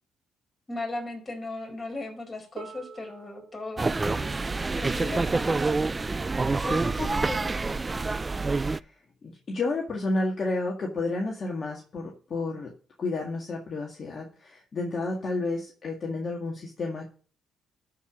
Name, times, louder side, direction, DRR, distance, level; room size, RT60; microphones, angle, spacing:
voice 1, 0.7-5.7 6.6-7.5, left 2 dB, 25° left, 2 dB, 4.9 m, -37 dB
Harp, 2.6-8.4 9.4-9.5, right 6 dB, 70° right, 1.8 m, -50 dB
sound 1, 3.8-8.8, right 3 dB, 25° right, 0.4 m, -27 dB
voice 2, 8.7-12.7 13.0-17.1, left 2 dB, 45° left, 0 dB, 1.9 m, -31 dB
12.5 x 4.9 x 5.3 m, 0.42 s
cardioid pair, 85°, 0 cm